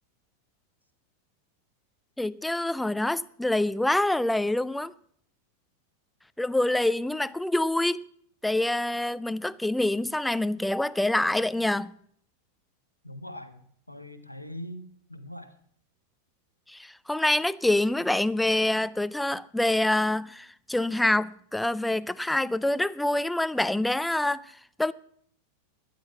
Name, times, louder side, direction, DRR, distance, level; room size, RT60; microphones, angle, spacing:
voice 1, 2.2-4.9 6.4-8.0 8.4-11.9 16.7-24.5 24.8-24.9, left 1 dB, 5° left, 0.5 m, -26 dB
voice 2, 13.0-13.6 13.9-15.5, left 1 dB, 90° left, 1.5 m, -41 dB
12.0 x 11.5 x 5.6 m
figure-of-eight pair, 90°, 0 cm